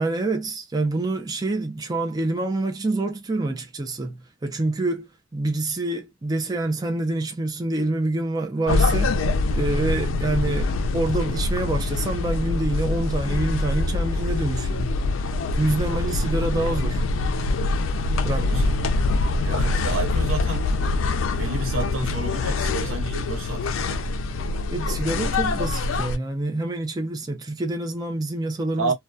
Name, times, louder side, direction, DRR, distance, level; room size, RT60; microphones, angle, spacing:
voice 1, 0.0-15.0 15.6-17.0 18.2-18.7 24.7-28.9, right 2 dB, 20° right, 0.4 m, -27 dB
sound 1, 8.7-26.2, left 3 dB, 80° left, 0.4 m, -24 dB
voice 2, 18.3-18.7 19.4-20.7 21.4-23.9 28.8-28.9, right 3 dB, 85° right, 0.9 m, -30 dB
2.2 x 2.2 x 2.5 m
head